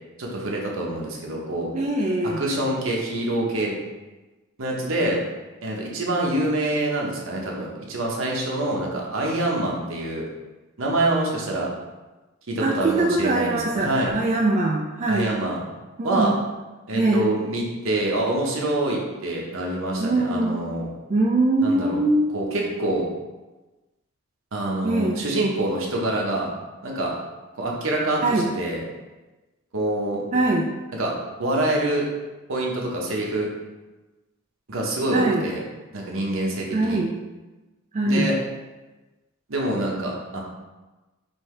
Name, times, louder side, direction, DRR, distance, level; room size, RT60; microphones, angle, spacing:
voice 1, 0.2-1.7 2.4-3.8 4.6-5.2 5.6-10.3 10.8-11.7 12.5-14.1 15.1-15.6 16.0-16.3 16.9-20.9 21.6-22.0 22.3-23.1 24.5-26.5 26.8-27.1 27.5-28.8 29.7-30.2 31.0-31.1 31.4-32.1 32.5-33.5 34.7-35.6 35.9-37.0 38.1-38.3 39.5-40.4, right 1 dB, 70° right, -2 dB, 0.9 m, -26 dB
voice 2, 1.7-2.4 12.6-15.3 16.0-16.4 16.9-17.3 20.0-20.7 21.1-22.3 24.8-25.2 28.2-28.5 30.3-30.7 35.1-35.4 36.7-37.1 37.9-38.3, right 2 dB, 35° right, -1 dB, 0.3 m, -22 dB
5.4 x 2.7 x 3.2 m, 1.1 s
head